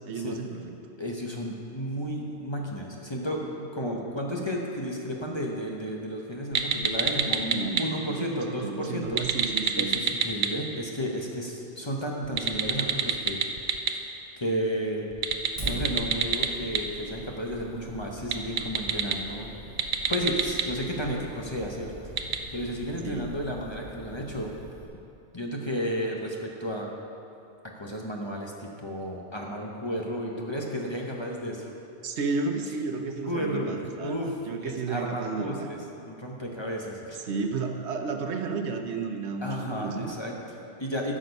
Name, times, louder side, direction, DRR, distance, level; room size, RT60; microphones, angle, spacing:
voice 1, 0.1-0.6 4.3-4.5 7.5-10.0 23.0-23.3 32.0-35.7 37.3-40.1, right 4 dB, 75° right, 5 dB, 1.0 m, -32 dB
voice 2, 1.0-9.2 9.8-13.4 13.9-14.0 14.4-15.1 15.6-19.6 20.1-21.9 22.5-24.5 25.3-26.9 27.7-31.7 33.1-37.3 39.4-41.2, equal, 25° left, -1 dB, 0.9 m, -33 dB
sound 1, 6.5-7.8 9.0-10.5 12.2-13.9 15.1-16.8 18.2-19.1 19.7-20.6 22.2-22.4, right 7 dB, 55° right, 0.7 m, -25 dB
Fire, 15.6-24.8, right 1 dB, 30° right, 1.7 m, -43 dB
12.5 x 6.3 x 5.3 m, 2.7 s
omnidirectional pair, 1.2 m